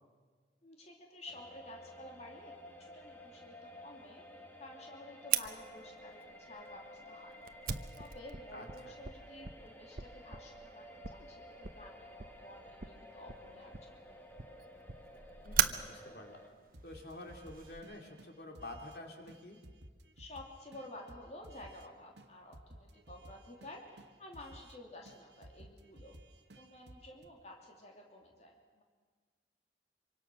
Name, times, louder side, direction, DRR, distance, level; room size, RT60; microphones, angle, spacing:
voice 1, 0.6-7.4 8.0-13.9 20.2-26.1 26.5-28.8, left 1 dB, 40° left, 1 dB, 2.9 m, -52 dB
sound 1, 1.3-16.5, left 1 dB, 10° left, 1.9 m, -53 dB
Fire, 5.3-17.8, right 9 dB, 55° right, 0.9 m, -40 dB
voice 2, 8.5-8.9 15.4-16.4 16.8-19.6, left 1 dB, 60° left, 2 dB, 2.9 m, -48 dB
sound 2, 16.7-19.0 19.3-21.9 22.2-22.3 22.5-24.8 25.1-27.3, right 1 dB, 85° right, 1.5 m, -56 dB
25.5 x 24.5 x 6.3 m, 1.5 s
head